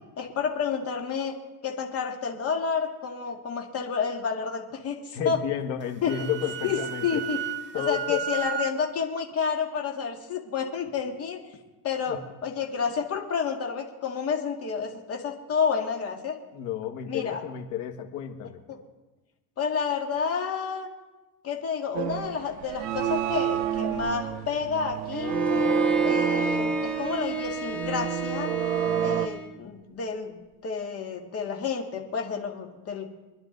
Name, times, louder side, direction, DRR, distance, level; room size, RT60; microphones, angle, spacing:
voice 1, 0.2-1.3 1.6-5.4 6.0-6.1 6.6-7.4 7.7-11.4 11.8-12.2 12.4-16.4 17.1-17.4 18.7-18.8 19.6-20.9 21.4-25.4 26.0-28.5 29.0-30.4 30.6-33.1, left 6 dB, 30° left, 2 dB, 2.1 m, -30 dB
voice 2, 5.1-7.2 7.7-8.3 12.1-12.2 16.5-18.6, left 9 dB, 80° left, 6 dB, 1.9 m, -31 dB
Wind instrument woodwind instrument, 5.8-8.8, right 10 dB, 25° right, 0.6 m, -33 dB
sound 1, 21.9-29.3, right 11 dB, 85° right, 0.9 m, -29 dB
Bowed string instrument, 25.1-29.5, right 1 dB, ahead, 1.2 m, -30 dB
25.0 x 11.0 x 4.0 m, 1.1 s
cardioid pair, 160°, 45 cm